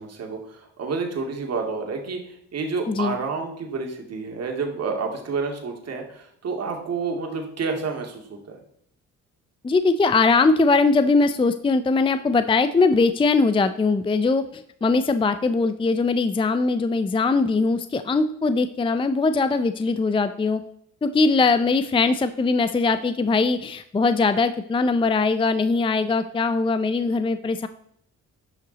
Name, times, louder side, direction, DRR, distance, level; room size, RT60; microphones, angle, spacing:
voice 1, 0.0-8.6, right 4 dB, 55° right, 2 dB, 2.3 m, -29 dB
voice 2, 2.9-3.2 9.6-20.6 21.0-27.7, left 3 dB, 15° left, 11 dB, 0.5 m, -21 dB
11.0 x 5.6 x 4.0 m, 0.69 s
cardioid pair, 90°, 30 cm